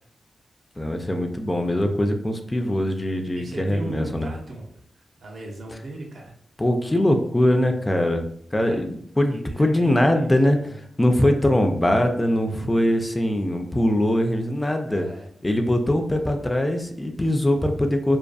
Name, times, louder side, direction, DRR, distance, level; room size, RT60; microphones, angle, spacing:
voice 1, 0.8-4.3 6.6-8.3 8.5-15.1 15.4-18.2, left 1 dB, 20° left, 4 dB, 0.3 m, -22 dB
voice 2, 3.4-6.3 8.6-8.8 9.3-10.8 14.9-15.3, right 2 dB, 70° right, 1 dB, 0.6 m, -37 dB
2.5 x 2.3 x 2.2 m, 0.67 s
cardioid pair, 55°, 0 cm